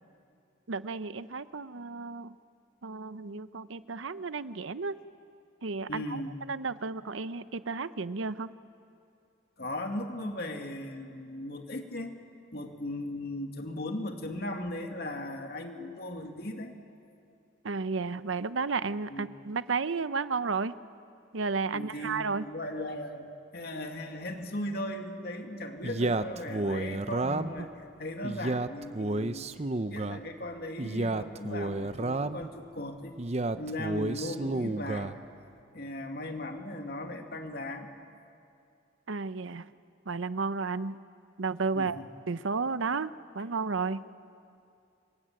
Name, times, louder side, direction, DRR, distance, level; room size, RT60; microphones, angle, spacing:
voice 1, 0.7-2.4 2.8-4.9 5.6-6.2 6.5-8.5 17.6-20.7 21.3-22.4 39.1-39.7 40.1-41.0 41.4-42.0 42.3-44.0, right 4 dB, 85° right, 14 dB, 0.8 m, -32 dB
voice 2, 5.9-6.3 9.6-12.1 12.5-16.7 19.1-19.3 21.7-29.5 29.8-33.1 33.6-35.1 35.7-37.9 41.8-42.1, left 1 dB, 55° left, 4 dB, 2.3 m, -37 dB
Male speech man speaking, 25.8-27.7 28.2-30.2 30.8-32.5 33.2-35.2, right 2 dB, 35° right, 0.7 m, -31 dB
28.5 x 23.0 x 9.1 m, 2.5 s
head